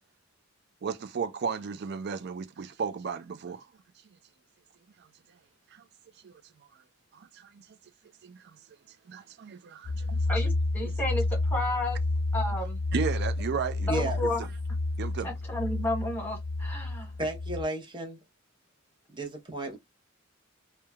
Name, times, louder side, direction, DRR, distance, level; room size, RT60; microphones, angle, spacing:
voice 1, 0.8-3.7 5.7-5.8 6.2-6.4 7.1-7.7 8.2-8.6 9.1-10.2 10.8-10.9 12.9-14.5 15.0-15.3, right 6 dB, 60° right, 0.4 m, -35 dB
sound 1, 9.8-17.6, left 2 dB, 40° left, 0.6 m, -30 dB
voice 2, 10.3-12.0 12.3-12.8 13.8-14.4 15.2-17.1, left 2 dB, 10° left, 1.2 m, -32 dB
voice 3, 13.9-14.2 17.2-18.2 19.1-19.8, right 1 dB, 25° right, 0.8 m, -33 dB
3.1 x 2.1 x 2.3 m
head